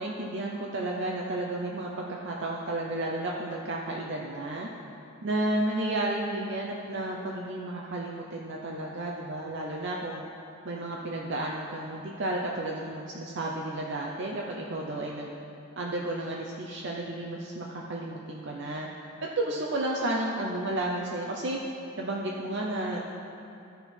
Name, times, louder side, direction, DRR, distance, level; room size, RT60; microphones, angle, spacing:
voice 1, 0.0-4.7 5.2-10.2 10.6-15.3 15.8-18.9 19.2-21.6 22.0-23.0, right 1 dB, 60° right, -2 dB, 0.7 m, -32 dB
13.0 x 4.5 x 5.3 m, 2.7 s
head